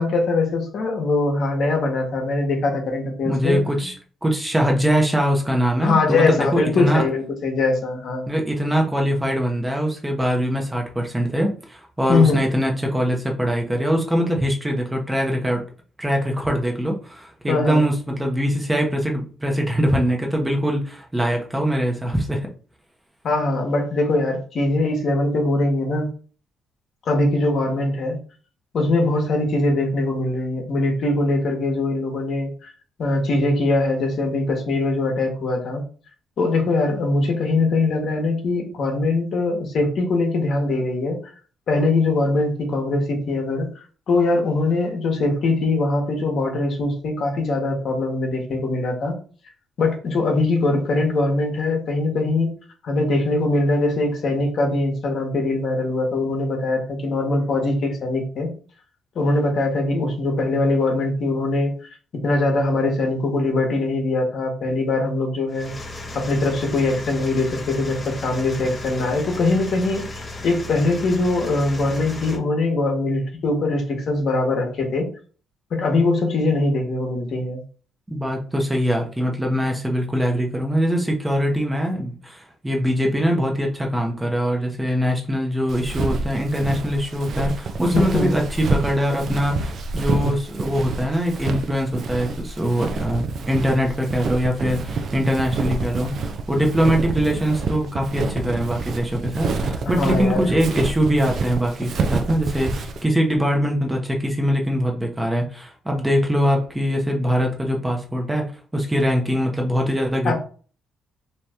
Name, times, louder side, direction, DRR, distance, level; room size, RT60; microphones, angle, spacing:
voice 1, 0.0-3.6 5.8-8.3 12.1-12.4 17.5-17.8 23.2-26.1 27.1-28.2 28.7-32.7 33.0-35.8 36.4-41.2 41.7-43.7 44.1-49.2 49.8-52.5 52.8-58.5 59.1-61.7 62.2-65.7 66.1-75.1 75.7-77.6 87.9-88.3 100.0-100.4 110.2-110.3, left 2 dB, 60° left, 2 dB, 1.1 m, -22 dB
voice 2, 3.2-3.9 4.2-7.0 8.3-15.6 16.0-22.5 78.1-108.4 108.7-110.3, equal, 15° right, 1 dB, 0.8 m, -22 dB
sound 1, 65.5-72.4, left 2 dB, 25° left, 0.8 m, -35 dB
Walk footsteps, 85.7-103.0, right 3 dB, 60° right, 0.4 m, -27 dB
2.8 x 2.5 x 3.3 m, 0.40 s
cardioid pair, 90°, 0 cm